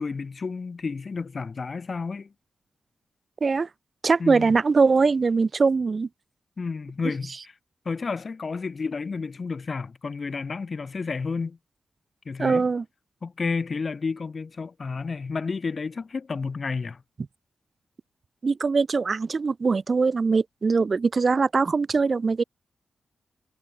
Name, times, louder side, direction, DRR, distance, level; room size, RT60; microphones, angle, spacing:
voice 1, 0.0-2.3 4.2-4.5 6.6-7.5 7.8-11.6 12.2-12.7 13.2-17.0, left 4 dB, 55° left, 2.8 m, -31 dB
voice 2, 4.0-6.1 12.4-12.8 18.4-22.4, right 4 dB, 50° right, 1.6 m, -22 dB
cardioid pair, 50°, 0 cm